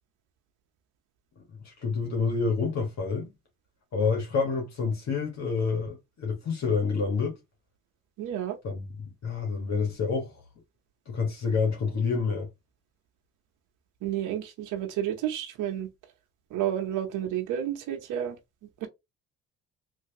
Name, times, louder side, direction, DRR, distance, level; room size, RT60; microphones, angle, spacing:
voice 1, 1.4-3.3 3.9-7.4 8.6-10.4 11.1-12.5, left 5 dB, 60° left, 1.5 m, -28 dB
voice 2, 8.2-8.6 14.0-15.9 16.5-18.4 18.8-18.9, right 11 dB, 90° right, 0.8 m, -30 dB
3.3 x 2.8 x 2.7 m
cardioid pair, 90°, 30 cm